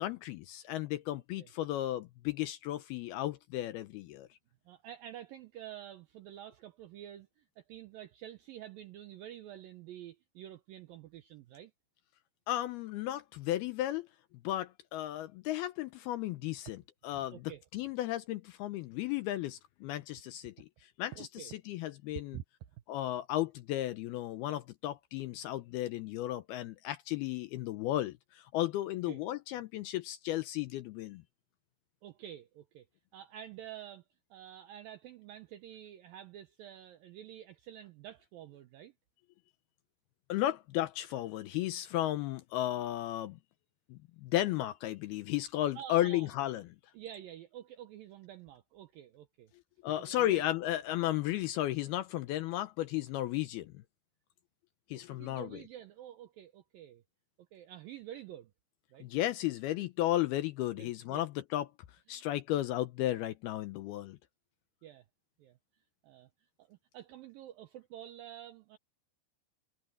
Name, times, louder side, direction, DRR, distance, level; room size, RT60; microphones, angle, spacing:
voice 1, 0.0-4.3 12.5-14.1 14.4-17.4 17.7-22.4 22.9-31.2 40.3-43.4 43.9-46.6 49.8-53.8 54.9-55.6 59.0-61.7 62.1-64.2, left 14 dB, 80° left, 2.3 m, -34 dB
voice 2, 4.7-11.7 17.3-17.6 21.1-21.5 22.3-22.4 29.1-29.2 32.0-32.9 33.1-34.1 34.3-38.9 45.8-46.3 46.9-49.5 50.0-50.5 54.9-57.0 57.5-58.5 58.9-59.1 60.7-61.2 62.1-62.2 64.8-65.1 65.4-65.6 66.0-66.3 66.6-68.8, right 11 dB, 90° right, 2.0 m, -49 dB
omnidirectional pair, 5.2 m